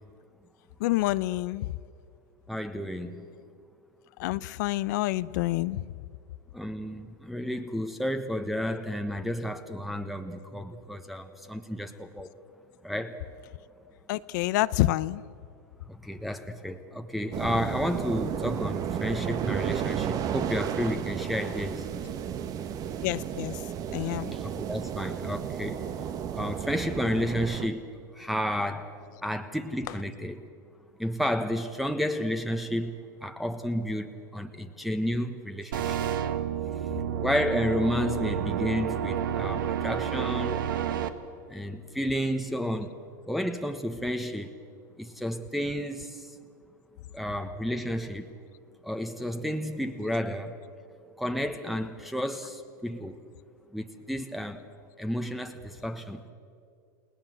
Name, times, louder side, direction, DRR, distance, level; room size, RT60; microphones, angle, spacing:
voice 1, 0.8-1.7 4.2-6.0 14.1-15.2 23.0-23.6 23.9-24.3 29.9-30.0, left 17 dB, 65° left, 16 dB, 0.6 m, -28 dB
voice 2, 2.5-3.3 6.5-12.3 12.8-13.2 15.9-21.9 24.3-25.8 26.3-27.9 28.1-28.9 29.2-30.4 31.0-32.9 33.2-36.0 37.2-40.7 41.5-42.9 43.3-44.5 45.0-46.3 47.1-48.3 48.8-50.5 51.2-53.2 53.7-54.6 55.0-56.3, equal, ahead, 4 dB, 1.2 m, -31 dB
sound 1, 17.3-27.7, right 8 dB, 35° right, 1.2 m, -33 dB
sound 2, 35.7-41.1, right 9 dB, 85° right, 1.6 m, -30 dB
30.0 x 18.5 x 7.9 m, 2.4 s
supercardioid pair, 130°, 11 cm